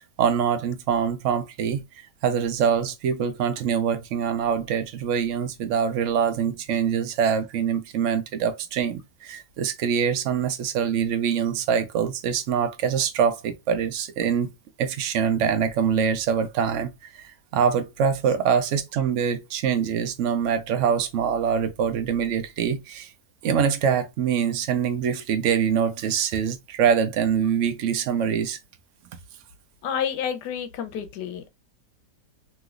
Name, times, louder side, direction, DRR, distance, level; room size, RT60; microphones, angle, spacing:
voice 1, 0.0-14.5 14.8-23.1 23.4-28.6, right 7 dB, 75° right, 0.7 m, -24 dB
voice 2, 29.8-31.5, left 8 dB, 85° left, 1.2 m, -29 dB
3.1 x 2.9 x 2.4 m
omnidirectional pair, 1.8 m